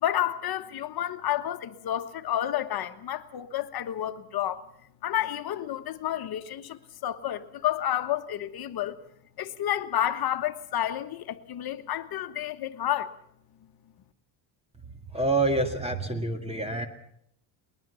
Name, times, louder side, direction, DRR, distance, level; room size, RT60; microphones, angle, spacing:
voice 1, 0.0-4.6 5.0-9.0 9.4-13.1, left 11 dB, 50° left, 1.3 m, -30 dB
voice 2, 15.1-16.9, right 2 dB, 15° right, 2.1 m, -27 dB
21.0 x 20.0 x 7.0 m
cardioid pair, 120°, 46 cm